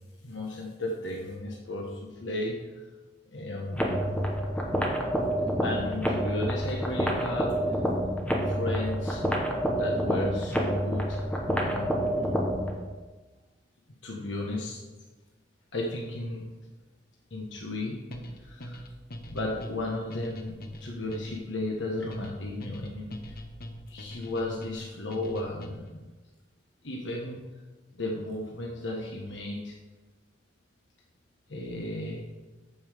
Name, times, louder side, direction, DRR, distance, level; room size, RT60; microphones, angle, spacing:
voice 1, 0.2-2.8 3.3-4.1 5.6-7.8 8.4-9.3 9.7-12.4 14.0-14.8 15.7-16.5 17.3-18.0 18.4-18.8 19.3-23.4 23.9-26.0 26.8-27.4 27.9-29.8 31.5-32.2, left 1 dB, 75° left, -1 dB, 1.3 m, -34 dB
sound 1, 3.7-12.7, equal, 5° left, 1.4 m, -28 dB
sound 2, 18.1-26.0, left 1 dB, 55° left, 1.1 m, -42 dB
14.0 x 5.6 x 5.0 m, 1.2 s
head